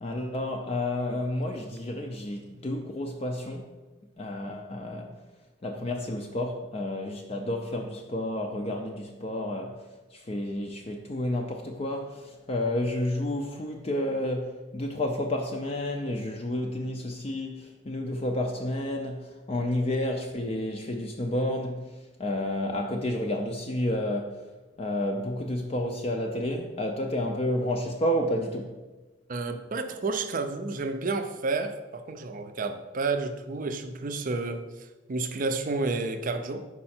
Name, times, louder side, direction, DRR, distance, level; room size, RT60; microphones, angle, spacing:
voice 1, 0.0-3.7 4.2-5.1 5.6-9.8 10.1-21.9 22.2-24.4 24.8-28.7, left 1 dB, 30° left, 0.4 m, -30 dB
voice 2, 29.3-36.7, right 3 dB, 40° right, 0.4 m, -31 dB
5.4 x 4.8 x 4.3 m
head